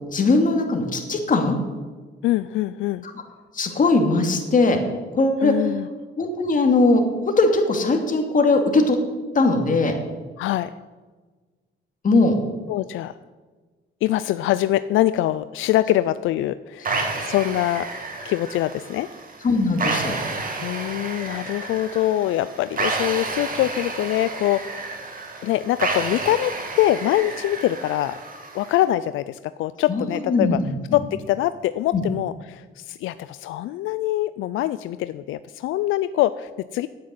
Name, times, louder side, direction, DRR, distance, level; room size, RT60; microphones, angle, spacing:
voice 1, 0.1-1.6 3.5-4.8 5.1-5.5 6.2-7.1 7.4-9.0 9.3-10.0 12.0-12.4 19.4-20.2 29.9-31.0 31.9-32.0, left 3 dB, 40° left, 4 dB, 2.5 m, -20 dB
voice 2, 2.2-3.0 5.4-5.9 10.4-10.7 12.7-13.2 14.0-17.9 18.2-19.1 20.6-25.1 25.4-28.2 28.5-30.6 30.9-36.9, left 14 dB, 85° left, 14 dB, 0.4 m, -24 dB
sound 1, 16.9-28.8, right 3 dB, 45° right, 2.6 m, -30 dB
9.3 x 8.9 x 9.5 m, 1.3 s
cardioid pair, 90°, 20 cm